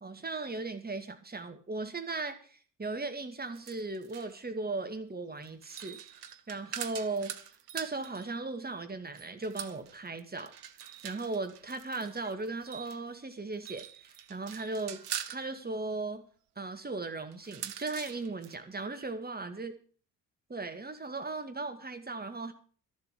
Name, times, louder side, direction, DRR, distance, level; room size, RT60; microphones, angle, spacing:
voice 1, 0.0-6.0 6.5-7.3 7.7-10.5 11.0-15.0 15.3-16.2 16.6-19.7 20.5-22.5, right 3 dB, 20° right, 8 dB, 2.2 m, -37 dB
sound 1, 3.5-4.4 5.4-8.3 9.1-13.0 13.5-15.5 17.3-18.5, right 10 dB, 85° right, 0.8 m, -43 dB
13.0 x 7.3 x 8.4 m, 0.44 s
figure-of-eight pair, 45°, 45 cm